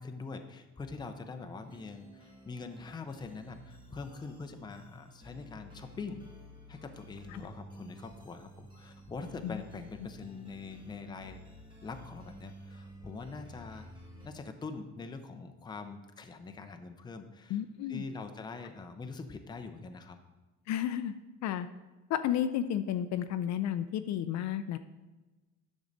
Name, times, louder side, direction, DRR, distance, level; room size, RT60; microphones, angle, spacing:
voice 1, 0.0-6.2 6.7-11.4 11.8-13.9 14.2-17.6 17.9-20.2, left 4 dB, 15° left, 6 dB, 0.6 m, -43 dB
sound 1, 1.6-14.3, equal, 15° right, 1.3 m, -52 dB
voice 2, 17.5-18.0 20.7-21.1 21.4-21.7 22.1-24.8, left 10 dB, 65° left, 10 dB, 0.5 m, -32 dB
10.5 x 6.3 x 4.0 m, 1.2 s
cardioid pair, 155°, 30 cm